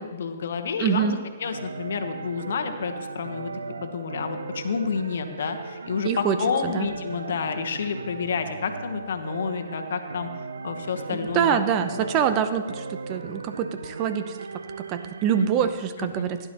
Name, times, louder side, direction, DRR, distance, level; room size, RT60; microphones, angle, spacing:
voice 1, 0.0-3.5 3.8-10.3 10.6-11.6 11.9-12.1 15.4-15.7 16.2-16.3, left 6 dB, 65° left, 7 dB, 1.1 m, -29 dB
voice 2, 0.8-1.2 6.0-6.4 6.6-6.9 11.1-16.5, right 8 dB, 30° right, 9 dB, 0.7 m, -25 dB
sound 1, 1.4-15.5, right 4 dB, 80° right, 0.5 m, -37 dB
16.0 x 10.5 x 3.0 m, 1.5 s
figure-of-eight pair, 125°, 0 cm